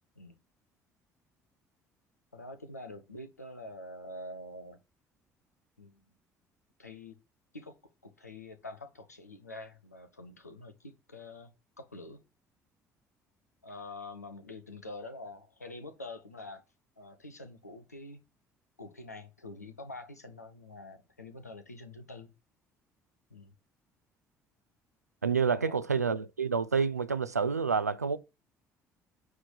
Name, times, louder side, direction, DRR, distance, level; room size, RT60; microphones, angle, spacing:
voice 1, 2.3-4.8 5.8-6.1 6.8-7.1 7.5-7.8 8.0-11.5 11.8-12.2 13.6-16.6 17.0-18.2 18.8-22.3 23.3-23.5 25.5-25.7, left 2 dB, 90° left, 0.9 m, -46 dB
voice 2, 25.2-28.2, right 5 dB, 90° right, 0.5 m, -28 dB
9.5 x 3.7 x 6.2 m
figure-of-eight pair, 50°, 8 cm